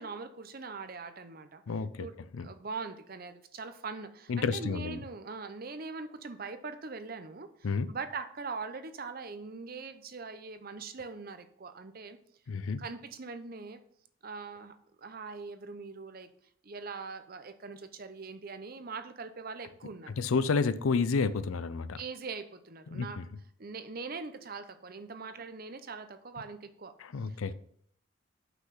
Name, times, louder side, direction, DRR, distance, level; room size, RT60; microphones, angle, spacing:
voice 1, 0.0-1.6 2.0-2.1 2.4-7.5 7.9-12.2 12.8-13.8 14.2-16.3 16.6-20.2 22.0-23.2 23.6-26.9 27.3-27.4, right 4 dB, 45° right, 0.7 m, -42 dB
voice 2, 1.7-2.1 2.3-2.5 4.3-5.0 7.6-7.9 12.5-12.8 20.1-22.0 22.9-23.3 27.0-27.5, left 4 dB, 90° left, 0.5 m, -30 dB
5.8 x 5.7 x 5.8 m
head